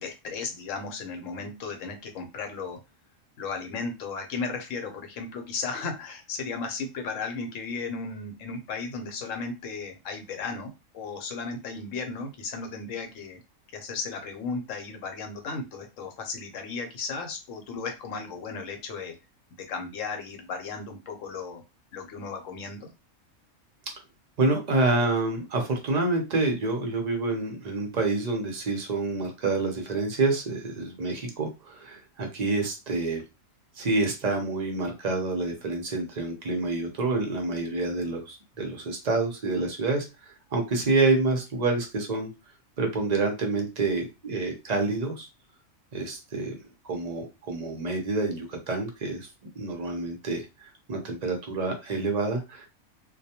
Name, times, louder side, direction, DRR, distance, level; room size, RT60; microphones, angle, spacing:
voice 1, 0.0-2.8 3.4-13.4 13.7-19.1 19.5-21.6 21.9-22.9, left 4 dB, 75° left, 5 dB, 1.0 m, -35 dB
voice 2, 24.4-33.2 33.8-42.3 42.8-45.3 45.9-49.3 49.6-52.7, right 3 dB, 50° right, 2 dB, 0.5 m, -28 dB
2.2 x 2.2 x 2.8 m, 0.26 s
omnidirectional pair, 1.4 m